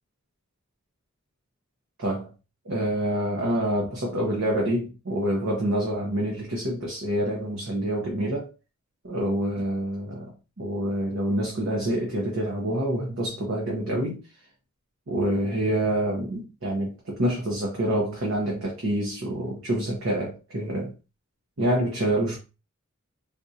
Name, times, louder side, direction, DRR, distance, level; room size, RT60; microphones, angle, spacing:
voice 1, 2.6-8.5 9.0-14.2 15.1-20.9 21.6-22.4, right 1 dB, 65° right, 0.9 m, -27 dB
3.7 x 2.6 x 2.7 m
head